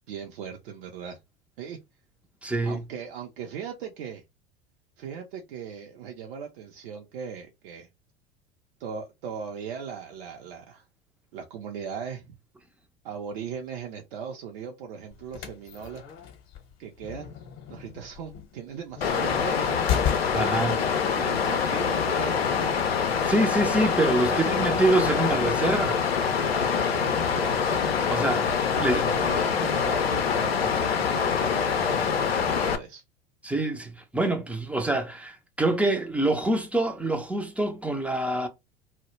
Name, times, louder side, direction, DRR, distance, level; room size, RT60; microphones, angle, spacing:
voice 1, 0.1-1.2 1.6-1.8 2.4-4.2 5.0-7.9 8.8-10.8 11.3-12.4 13.0-16.0 16.8-17.3 17.7-19.8 21.2-23.1 24.0-24.9 26.5-27.8 28.5-33.0, right 7 dB, 65° right, 0.5 m, -38 dB
voice 2, 2.4-2.8 20.3-20.8 23.0-26.0 28.1-29.0 33.4-38.5, right 2 dB, 5° right, 0.3 m, -26 dB
sound 1, 15.1-20.7, left 9 dB, 45° left, 0.7 m, -34 dB
Water, 19.0-32.8, left 6 dB, 85° left, 0.5 m, -25 dB
2.2 x 2.0 x 2.9 m
figure-of-eight pair, 80°, 30 cm